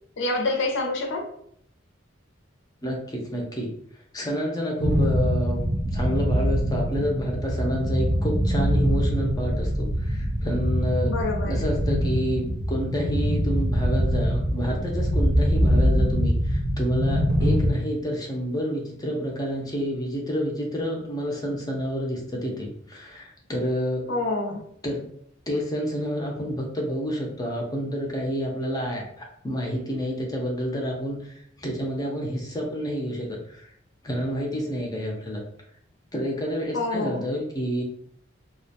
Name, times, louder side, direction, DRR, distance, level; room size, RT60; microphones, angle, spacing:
voice 1, 0.2-1.3 11.0-11.6 24.1-24.6 36.7-37.3, left 2 dB, 65° left, 1 dB, 0.6 m, -27 dB
voice 2, 2.8-3.7 4.1-11.1 11.5-24.1 24.8-25.1 25.5-33.7 34.0-35.4 36.1-37.8, equal, 20° left, -1 dB, 0.5 m, -29 dB
sound 1, 4.8-17.7, equal, 50° right, 0.5 m, -23 dB
2.3 x 2.1 x 2.7 m, 0.67 s
head